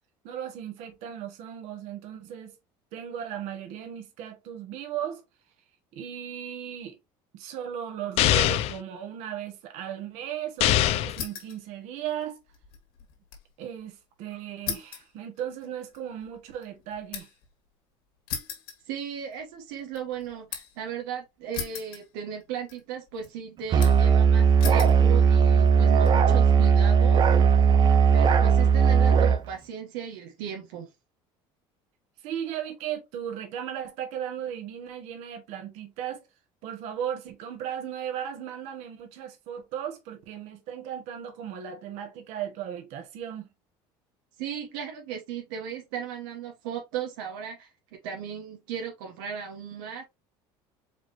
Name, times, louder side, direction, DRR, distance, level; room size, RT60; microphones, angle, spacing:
voice 1, 0.2-2.5 2.9-5.2 5.9-7.0 7.3-12.4 13.6-17.3 32.2-36.3 36.6-43.5, right 9 dB, 70° right, 1.6 m, -36 dB
sound 1, 8.2-8.8 10.6-11.2, left 13 dB, 60° left, 0.5 m, -22 dB
sound 2, 11.1-11.6 12.0-13.5 13.8-13.9 14.7-17.5 18.3-19.4 19.8-20.8 21.5-22.4 22.7-23.3 23.8-24.2 24.6-25.0 25.7-26.1, left 8 dB, 80° left, 1.9 m, -38 dB
voice 2, 18.9-27.5 28.1-30.9 44.4-47.7 48.0-50.0, right 8 dB, 90° right, 1.4 m, -36 dB
Musical instrument, 23.7-29.4, right 6 dB, 35° right, 0.7 m, -18 dB
4.8 x 3.7 x 2.8 m
cardioid pair, 120°, 12 cm